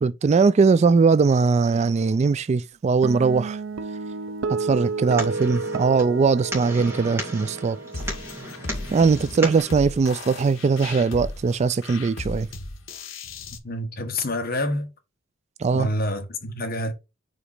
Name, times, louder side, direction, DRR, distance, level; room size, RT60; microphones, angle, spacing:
voice 1, 0.0-3.6 4.6-7.8 8.9-12.5 15.6-15.9, right 4 dB, 35° right, 0.3 m, -20 dB
Guitar, 3.0-9.6, right 4 dB, 80° right, 0.6 m, -32 dB
sound 1, 4.7-9.7, equal, 15° right, 2.6 m, -36 dB
sound 2, 7.9-13.6, left 3 dB, 75° left, 1.1 m, -36 dB
voice 2, 13.6-14.9 15.7-16.9, left 1 dB, 50° left, 1.5 m, -27 dB
5.0 x 4.2 x 4.9 m
head